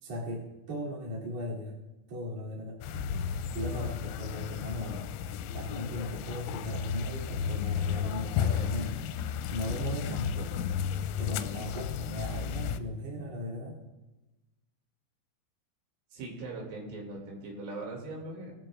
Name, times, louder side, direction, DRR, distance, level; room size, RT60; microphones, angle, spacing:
voice 1, 0.0-1.8 2.1-5.0 5.5-10.5 11.2-13.8, left 1 dB, 35° right, -6 dB, 3.5 m, -37 dB
sound 1, 2.8-12.8, left 8 dB, 80° left, 2.8 m, -33 dB
voice 2, 16.1-18.5, right 2 dB, 75° right, -1 dB, 4.8 m, -40 dB
20.0 x 13.5 x 2.5 m, 1.1 s
omnidirectional pair, 5.8 m